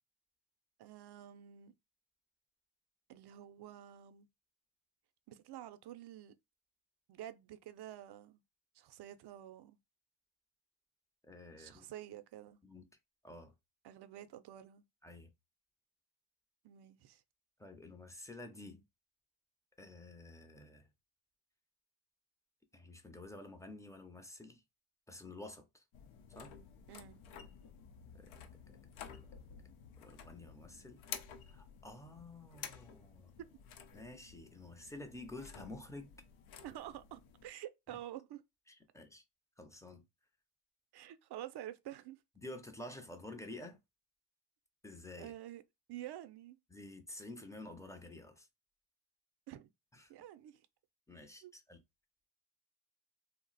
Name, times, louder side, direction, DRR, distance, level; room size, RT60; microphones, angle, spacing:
voice 1, 0.8-1.7 3.1-4.3 5.3-6.3 7.1-8.4 8.7-9.8 11.6-12.6 13.8-14.8 16.6-17.2 26.9-27.1 33.4-33.5 36.6-38.4 40.9-42.2 45.2-45.6 45.9-46.6 49.5-49.7 50.1-50.7 51.4-51.5, right 12 dB, 55° right, 0.5 m, -49 dB
voice 2, 11.2-11.9 12.6-12.8 13.2-13.5 15.0-15.3 17.6-18.8 19.8-20.9 22.7-24.6 25.1-25.8 26.3-26.5 28.1-28.4 30.0-31.0 31.5-33.4 33.9-36.1 37.9-38.0 38.7-39.2 39.6-40.0 42.4-43.8 44.8-45.3 46.7-48.5 49.9-50.1 51.1-51.8, left 2 dB, 5° left, 0.5 m, -50 dB
sound 1, 25.9-37.5, left 7 dB, 85° left, 0.6 m, -52 dB
2.3 x 2.1 x 3.9 m
cardioid pair, 85°, 48 cm